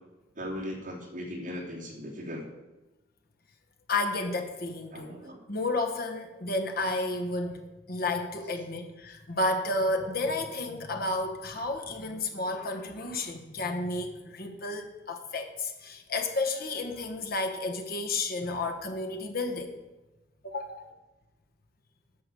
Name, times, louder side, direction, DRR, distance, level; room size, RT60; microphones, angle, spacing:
voice 1, 0.3-2.4 4.9-5.4, left 1 dB, 45° right, -4 dB, 2.8 m, -38 dB
voice 2, 3.9-5.2 5.5-7.6 7.9-19.7 20.4-20.9, left 2 dB, 55° left, 4 dB, 1.2 m, -31 dB
9.7 x 6.7 x 6.9 m, 1.1 s
head